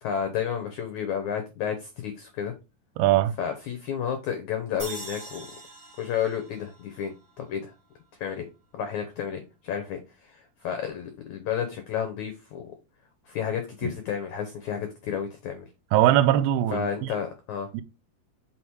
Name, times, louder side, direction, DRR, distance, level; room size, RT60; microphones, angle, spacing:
voice 1, 0.0-2.5 3.4-5.5 6.0-7.7 8.2-8.5 8.7-12.7 13.3-15.7 16.7-17.7, left 8 dB, 85° left, 1.6 m, -31 dB
voice 2, 3.0-3.3 13.8-13.9 15.9-17.1 17.7-17.8, right 13 dB, 80° right, 2.4 m, -21 dB
sound 1, 4.8-8.1, right 2 dB, 65° right, 0.5 m, -43 dB
5.9 x 3.6 x 4.6 m
omnidirectional pair, 4.6 m